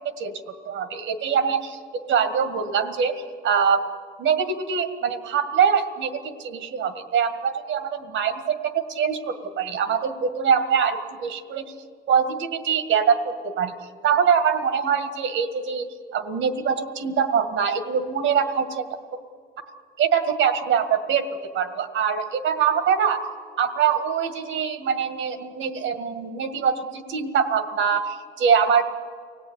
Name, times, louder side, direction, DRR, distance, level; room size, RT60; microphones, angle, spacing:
voice 1, 0.7-1.8 2.1-3.1 3.4-3.9 4.2-11.7 12.1-13.7 14.0-15.9 16.1-18.9 20.0-23.2 23.6-28.8, right 7 dB, 75° right, 9 dB, 1.9 m, -23 dB
24.5 x 17.5 x 9.7 m, 2.1 s
cardioid pair, 90°, 20 cm